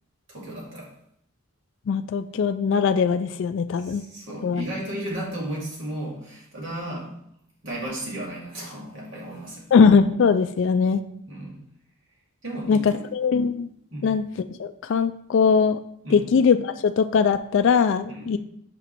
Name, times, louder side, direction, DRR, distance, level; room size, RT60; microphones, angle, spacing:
voice 1, 0.3-0.9 3.8-7.2 7.6-9.8 11.3-11.6 12.4-13.1 13.9-14.1 16.0-16.3 18.1-18.4, right 1 dB, 55° right, -4 dB, 2.4 m, -34 dB
voice 2, 1.9-4.0 4.4-4.6 9.7-11.0 12.7-13.7 14.0-14.2 14.6-15.8 16.1-18.4, left 5 dB, 55° left, 8 dB, 0.3 m, -20 dB
6.0 x 5.3 x 4.4 m, 0.70 s
head